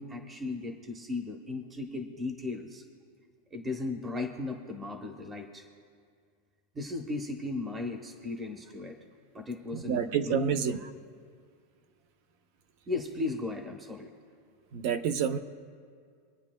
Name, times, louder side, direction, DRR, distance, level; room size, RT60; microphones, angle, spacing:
voice 1, 0.0-2.8 3.5-5.6 6.7-9.0 9.3-10.5 12.9-14.1, left 3 dB, 15° right, 2 dB, 0.9 m, -36 dB
voice 2, 9.7-10.8 14.7-15.4, right 7 dB, 45° right, 10 dB, 0.6 m, -28 dB
26.5 x 9.6 x 2.2 m, 2.1 s
supercardioid pair, 170°, 0 cm